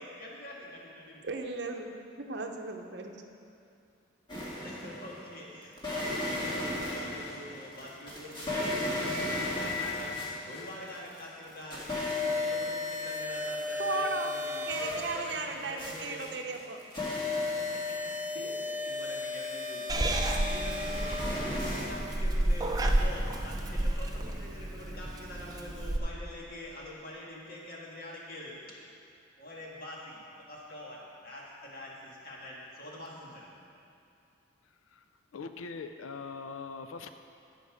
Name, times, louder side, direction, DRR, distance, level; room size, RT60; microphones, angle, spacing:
voice 1, 0.0-1.2 4.6-16.2 17.3-18.5 18.8-28.7 29.4-33.5, left 1 dB, 45° left, -4 dB, 1.8 m, -45 dB
voice 2, 1.2-3.1 13.8-14.3 14.7-16.8, right 3 dB, 55° right, 3 dB, 0.7 m, -36 dB
sound 1, 4.3-5.2 5.8-11.2 11.5-21.8, left 2 dB, 25° left, 1.9 m, -34 dB
Purr / Meow, 19.9-26.0, right 1 dB, 20° right, 0.6 m, -31 dB
voice 3, 35.3-37.1, left 4 dB, 85° left, 8 dB, 0.4 m, -41 dB
16.0 x 5.4 x 4.9 m, 2.5 s
head